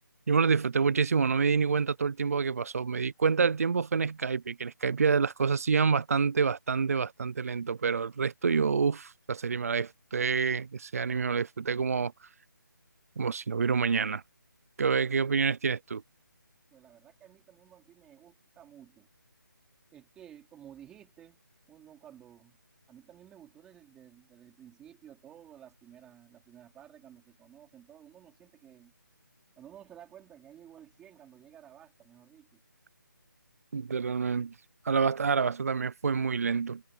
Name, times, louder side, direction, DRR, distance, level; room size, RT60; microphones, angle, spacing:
voice 1, 0.3-12.1 13.2-14.2 14.8-16.0 33.7-34.5 34.8-36.8, right 5 dB, 45° right, 0.4 m, -27 dB
voice 2, 16.7-19.1 19.9-21.4 21.7-22.6 22.9-28.9 29.6-32.6, right 10 dB, 5° right, 4.1 m, -53 dB
hypercardioid pair, 175°, 11 cm